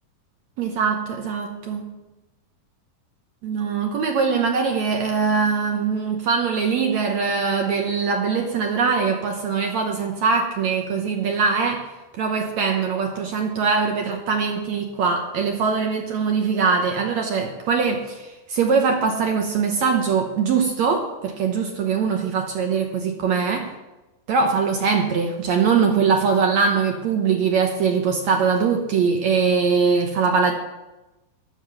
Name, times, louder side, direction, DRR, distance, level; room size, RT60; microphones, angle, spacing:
voice 1, 0.6-2.0 3.4-11.9 12.2-23.7 24.3-30.5, right 5 dB, 70° right, 2 dB, 1.8 m, -22 dB
11.0 x 7.1 x 7.8 m, 1.0 s
omnidirectional pair, 4.3 m